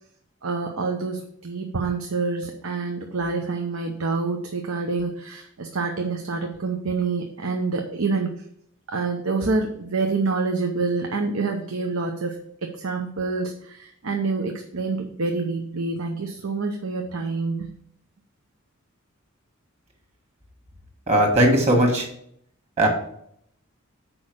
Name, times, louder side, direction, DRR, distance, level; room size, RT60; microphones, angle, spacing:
voice 1, 0.4-8.4 8.9-17.7, right 3 dB, 85° right, 3 dB, 0.8 m, -27 dB
voice 2, 21.1-22.1 22.8-22.9, right 1 dB, 30° right, 2 dB, 1.8 m, -18 dB
6.3 x 5.0 x 6.3 m, 0.70 s
head